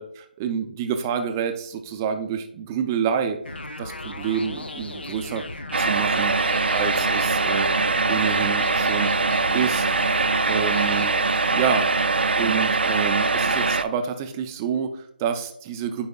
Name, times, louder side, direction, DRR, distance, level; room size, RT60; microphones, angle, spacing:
voice 1, 0.0-3.4 3.8-5.4 5.8-6.4 6.7-9.1 9.5-11.2 11.5-11.9 12.4-16.1, right 7 dB, 15° right, 7 dB, 0.4 m, -28 dB
sound 1, 3.5-11.1, left 2 dB, 90° left, 0.7 m, -36 dB
sound 2, 5.7-13.8, right 3 dB, 80° right, 0.5 m, -22 dB
9.5 x 4.7 x 2.3 m, 0.71 s
figure-of-eight pair, 160°, 5 cm